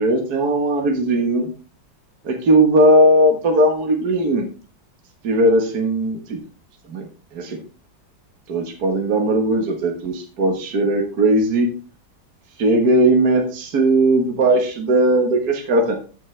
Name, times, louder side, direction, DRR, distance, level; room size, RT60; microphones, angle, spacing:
voice 1, 0.0-1.5 2.2-4.5 5.2-6.4 6.9-7.6 8.5-11.7 12.6-15.9, right 1 dB, 55° right, 2 dB, 1.9 m, -18 dB
13.5 x 6.4 x 3.3 m, 0.36 s
omnidirectional pair, 2.0 m